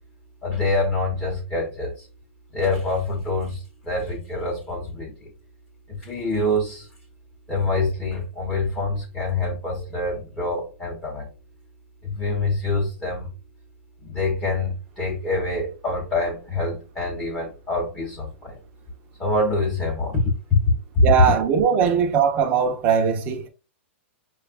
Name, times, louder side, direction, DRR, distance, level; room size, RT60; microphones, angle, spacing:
voice 1, 0.4-2.1 2.5-5.1 5.9-6.9 7.5-11.3 12.0-13.3 14.0-18.6 19.2-20.6 20.9-21.0, left 2 dB, 15° left, 1.0 m, -25 dB
voice 2, 21.0-23.5, right 7 dB, 25° right, 0.7 m, -20 dB
6.2 x 2.3 x 2.4 m
hypercardioid pair, 160°, 7 cm